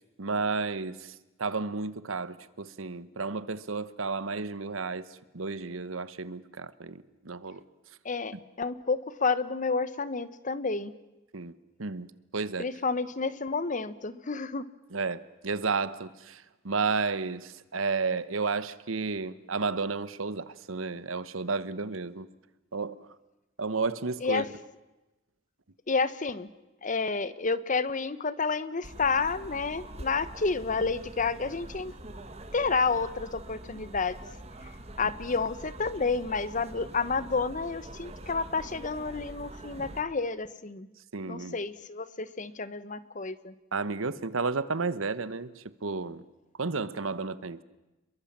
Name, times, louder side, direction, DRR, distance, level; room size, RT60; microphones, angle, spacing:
voice 1, 0.2-1.1 1.4-5.0 5.3-7.6 11.3-11.5 11.8-12.7 14.9-22.3 22.7-23.0 23.6-24.4 41.1-41.6 43.7-46.2 46.6-47.6, right 4 dB, 90° right, 1.1 m, -32 dB
voice 2, 8.0-10.9 12.6-14.6 24.2-24.5 25.9-26.5 26.8-31.9 32.5-34.2 35.0-40.9 41.2-43.5, left 4 dB, 40° left, 1.0 m, -30 dB
sound 1, 28.8-40.0, right 1 dB, 30° right, 2.0 m, -45 dB
29.5 x 22.5 x 7.4 m
head